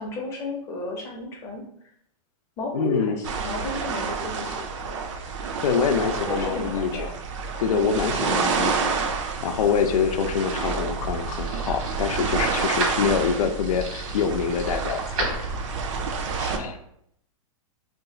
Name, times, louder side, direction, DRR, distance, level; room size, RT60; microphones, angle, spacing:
voice 1, 0.0-1.6 2.6-4.6 6.3-7.1 8.1-8.6 10.6-10.7 13.3-13.5 16.4-16.6, left 2 dB, 15° left, 0 dB, 0.5 m, -33 dB
voice 2, 2.7-3.2 5.6-7.1 7.6-9.0 9.4-15.3 16.5-16.7, left 6 dB, 90° left, 7 dB, 0.5 m, -25 dB
sound 1, 3.2-16.6, right 5 dB, 60° right, 0.5 m, -29 dB
sound 2, 11.0-16.0, right 2 dB, 75° right, 1.2 m, -35 dB
2.5 x 2.3 x 3.8 m, 0.71 s
supercardioid pair, 165°, 18 cm